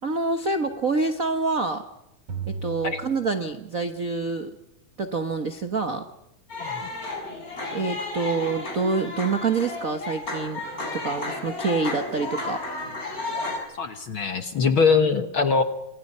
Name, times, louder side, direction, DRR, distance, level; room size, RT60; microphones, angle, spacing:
voice 1, 0.0-1.8 2.5-4.6 5.0-6.1 7.7-10.6 10.9-12.6, right 4 dB, 75° right, 7 dB, 0.7 m, -26 dB
sound 1, 2.3-4.1, right 4 dB, 45° right, 3.3 m, -36 dB
sound 2, 6.5-13.6, left 2 dB, 25° left, 7.7 m, -32 dB
voice 2, 13.8-15.6, left 5 dB, 55° left, 7 dB, 1.5 m, -22 dB
29.5 x 26.5 x 5.6 m, 0.88 s
omnidirectional pair, 3.7 m